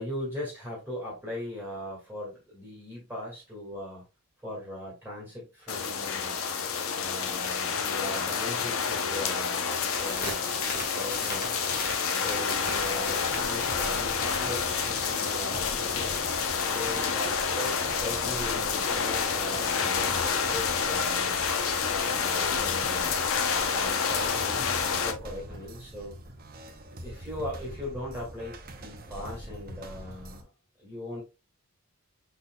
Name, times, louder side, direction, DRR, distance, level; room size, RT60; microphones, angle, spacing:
voice 1, 0.0-4.0 4.4-6.4 6.9-11.6 12.1-16.1 16.7-17.7 18.0-21.4 22.1-23.2 23.7-26.1 27.0-30.5 30.8-31.2, left 1 dB, 10° right, 1.9 m, -39 dB
sound 1, 5.7-25.1, left 6 dB, 65° left, 0.7 m, -29 dB
sound 2, 6.6-9.0 9.2-9.5 9.8-16.7, left 2 dB, 40° left, 1.6 m, -39 dB
sound 3, 12.5-30.4, right 1 dB, 40° right, 0.8 m, -44 dB
5.8 x 4.0 x 2.2 m
head